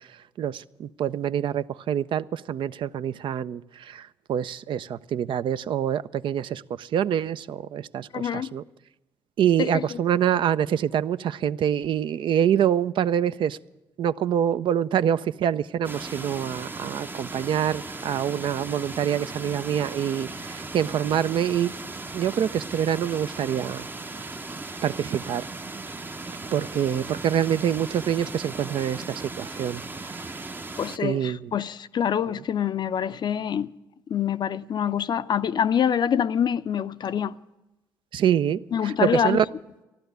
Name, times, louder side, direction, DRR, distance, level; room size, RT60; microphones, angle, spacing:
voice 1, 0.4-8.6 9.4-13.6 14.0-21.7 22.1-23.8 24.8-25.4 26.5-29.8 31.0-31.5 38.1-39.5, right 9 dB, 65° right, 0.4 m, -26 dB
voice 2, 8.1-8.5 9.6-10.0 30.8-33.7 34.1-37.4 38.7-39.5, left 8 dB, 55° left, 0.5 m, -25 dB
sound 1, 15.8-31.0, right 3 dB, 20° right, 0.6 m, -37 dB
14.5 x 11.5 x 8.0 m
supercardioid pair, 60°, 9 cm